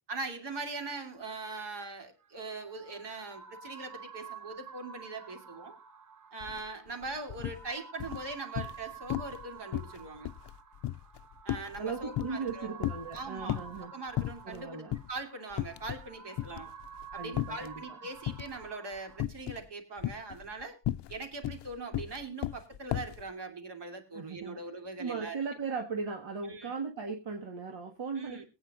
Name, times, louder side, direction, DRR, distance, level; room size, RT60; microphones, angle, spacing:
voice 1, 0.1-5.7 6.3-10.3 11.4-12.8 13.1-16.7 17.1-20.8 21.1-25.4 26.5-26.7 28.2-28.4, right 3 dB, 65° right, 5 dB, 3.0 m, -41 dB
sound 1, 2.2-19.2, right 6 dB, 40° right, 0.8 m, -49 dB
sound 2, 6.4-6.6 6.9-7.6 8.0-8.8 9.1-9.4 9.7-12.5 12.8-13.8 14.2-14.6 14.9-15.1 15.5-16.1 16.4-17.7 18.3-18.7 19.2-19.7 20.0-23.2, left 13 dB, 65° left, 0.5 m, -35 dB
voice 2, 11.6-13.9 14.5-14.9 17.2-17.8 24.1-24.6 25.0-28.4, right 5 dB, 80° right, 2 dB, 1.7 m, -37 dB
22.5 x 8.9 x 2.4 m, 0.26 s
wide cardioid pair, 135°, 45 cm